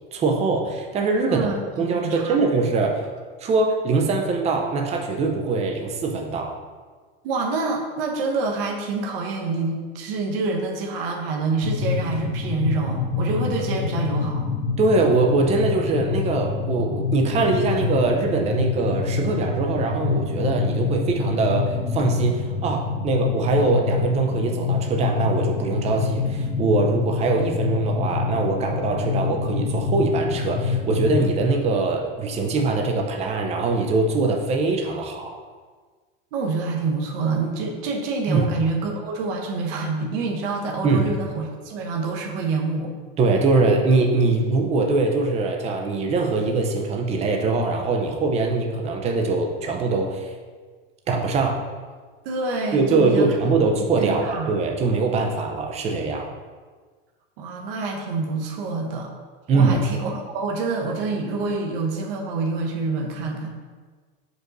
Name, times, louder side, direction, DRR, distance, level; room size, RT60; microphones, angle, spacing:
voice 1, 0.1-1.5 1.8-3.0 3.4-6.6 14.8-35.4 38.3-38.5 40.8-41.0 43.2-50.3 51.1-51.6 52.7-56.3 59.5-59.8, right 3 dB, 20° right, 2 dB, 0.7 m, -22 dB
voice 2, 1.3-2.7 7.2-14.5 36.3-42.9 52.2-53.3 53.8-54.5 57.4-59.1 59.5-63.5, right 3 dB, 70° right, 0 dB, 1.2 m, -27 dB
sound 1, 11.6-31.2, left 5 dB, 85° left, 1.1 m, -26 dB
6.1 x 5.3 x 4.0 m, 1.5 s
supercardioid pair, 150°, 29 cm